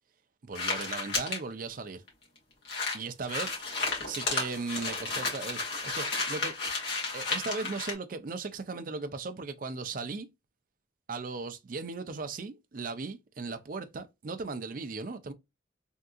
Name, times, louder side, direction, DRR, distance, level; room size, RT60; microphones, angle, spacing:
voice 1, 0.4-2.0 2.9-3.6 4.1-6.5 7.1-10.3 11.1-15.3, right 4 dB, 45° right, 0.4 m, -37 dB
sound 1, 0.5-1.4 2.1-2.2 2.4-2.5 2.6-7.9, left 3 dB, 60° left, 1.5 m, -33 dB
3.6 x 2.7 x 2.3 m
head